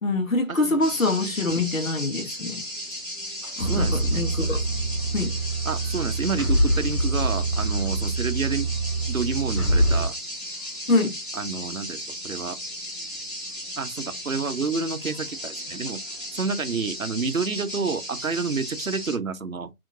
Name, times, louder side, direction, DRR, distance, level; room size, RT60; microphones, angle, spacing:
voice 1, 0.0-2.6 3.6-4.6 5.1-5.4 10.9-11.1, left 2 dB, 60° left, 0.9 m, -25 dB
sound 1, 0.8-19.2, equal, 35° left, 1.4 m, -35 dB
sound 2, 3.6-10.1, right 2 dB, 80° left, 1.1 m, -25 dB
voice 2, 3.6-4.3 5.7-8.7 9.1-10.2 11.3-12.6 13.8-16.0 16.3-19.7, right 4 dB, 65° right, 0.7 m, -29 dB
2.8 x 2.4 x 2.7 m
figure-of-eight pair, 175°, 45 cm